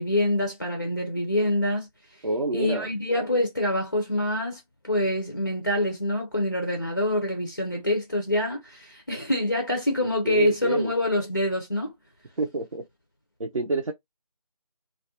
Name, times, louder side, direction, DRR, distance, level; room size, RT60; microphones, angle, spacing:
voice 1, 0.0-1.9 2.5-11.9, left 1 dB, 30° left, 0.4 m, -26 dB
voice 2, 2.2-2.9 10.2-10.9 12.4-12.8 13.4-13.9, right 2 dB, 60° right, 0.5 m, -28 dB
2.3 x 2.1 x 2.6 m
figure-of-eight pair, 160°, 20 cm